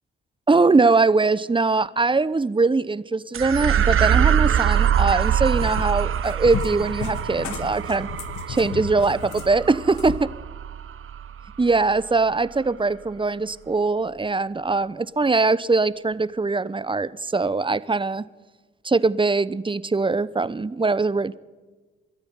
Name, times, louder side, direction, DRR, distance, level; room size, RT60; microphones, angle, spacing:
voice 1, 0.5-8.1 8.5-10.1 11.6-18.3 18.8-21.3, right 3 dB, 15° right, 18 dB, 0.9 m, -22 dB
sound 1, 3.3-12.0, right 9 dB, 45° right, 0.8 m, -24 dB
Cat, 5.1-10.2, left 8 dB, 65° left, 1.3 m, -35 dB
22.5 x 13.5 x 9.5 m, 1.3 s
hypercardioid pair, 45°, 30 cm